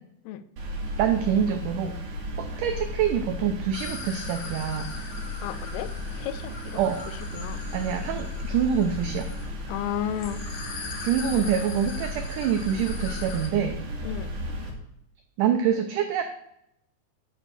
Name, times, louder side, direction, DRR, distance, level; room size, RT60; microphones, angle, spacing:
sound 1, 0.6-14.7, left 1 dB, 55° right, 3.3 m, -35 dB
voice 1, 1.0-2.0 2.4-4.9 6.8-7.0 7.7-9.3 11.0-13.8 15.4-16.2, right 8 dB, 90° right, 6 dB, 1.8 m, -26 dB
sound 2, 3.7-13.5, left 4 dB, 60° left, 2.0 m, -41 dB
voice 2, 5.4-6.8 7.3-7.6 9.7-10.4 14.0-14.3, left 11 dB, 85° left, 13 dB, 2.5 m, -33 dB
9.9 x 5.0 x 6.3 m, 0.77 s
omnidirectional pair, 4.5 m